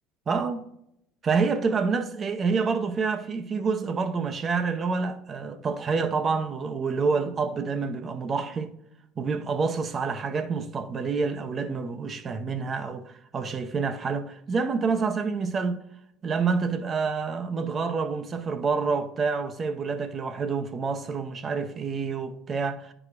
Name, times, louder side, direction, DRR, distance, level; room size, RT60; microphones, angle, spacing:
voice 1, 0.3-0.6 1.2-8.7 9.2-15.8 16.2-22.9, right 5 dB, 35° right, 0.7 m, -28 dB
9.5 x 4.9 x 2.5 m
supercardioid pair, 110°, 0 cm